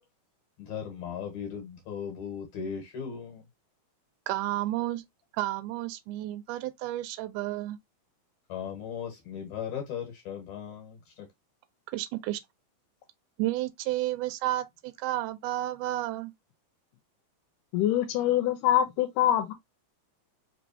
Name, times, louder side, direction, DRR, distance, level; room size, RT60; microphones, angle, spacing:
voice 1, 0.7-3.4 8.5-11.0, left 7 dB, 70° left, 2.5 m, -37 dB
voice 2, 4.3-5.0 5.3-7.8 11.9-12.4 13.4-16.3, right 15 dB, 80° right, 2.0 m, -31 dB
voice 3, 17.7-19.5, left 12 dB, 85° left, 2.3 m, -24 dB
4.9 x 3.1 x 2.7 m
omnidirectional pair, 3.7 m